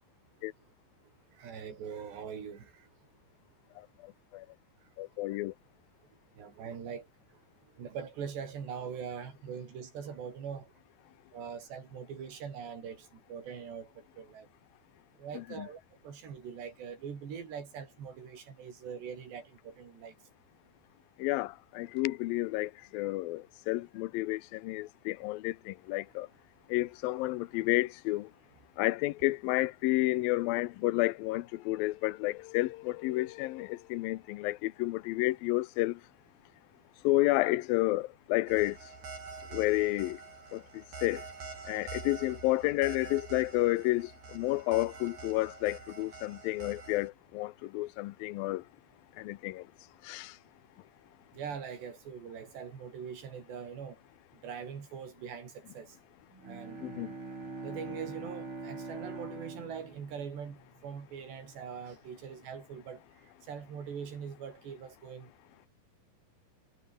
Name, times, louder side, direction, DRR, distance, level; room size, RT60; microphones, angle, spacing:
voice 1, 1.4-2.9 6.4-7.1 7.8-10.7 11.3-13.9 14.2-14.5 15.2-20.1 51.3-54.0 54.4-56.0 56.4-56.8 57.6-63.0 63.5-65.3, right 7 dB, 70° right, 6.6 m, -42 dB
voice 2, 5.0-5.5 15.4-15.7 21.2-26.3 26.7-28.3 28.8-36.0 37.0-38.8 39.5-40.2 40.5-40.6 41.0-41.2 41.7-48.6 49.2-49.6 50.0-50.3 56.8-57.1, left 18 dB, 85° left, 2.1 m, -31 dB
sound 1, 38.5-47.1, right 4 dB, 50° right, 8.2 m, -46 dB
Bowed string instrument, 56.3-61.1, right 3 dB, 30° right, 6.5 m, -43 dB
omnidirectional pair, 5.1 m